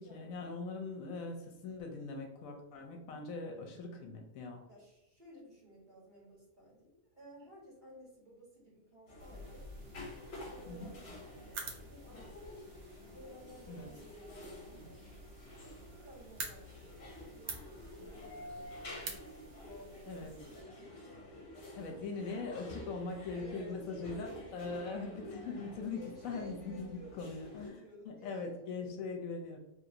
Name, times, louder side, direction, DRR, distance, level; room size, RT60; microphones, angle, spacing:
voice 1, 0.0-4.6 10.7-10.9 13.7-13.9 20.1-20.3 21.7-24.3 24.5-27.7 28.1-29.6, left 4 dB, 80° left, 3 dB, 1.0 m, -41 dB
voice 2, 4.7-12.6 13.1-15.8 16.0-19.1 19.4-20.9 21.3-21.5 23.3-24.9 25.9-29.2, equal, 35° right, -8 dB, 1.5 m, -55 dB
sound 1, 9.1-27.7, left 1 dB, 55° left, 1.0 m, -50 dB
sound 2, 9.2-20.6, right 3 dB, 65° right, 0.8 m, -50 dB
3.1 x 2.5 x 2.8 m, 0.90 s
omnidirectional pair, 1.5 m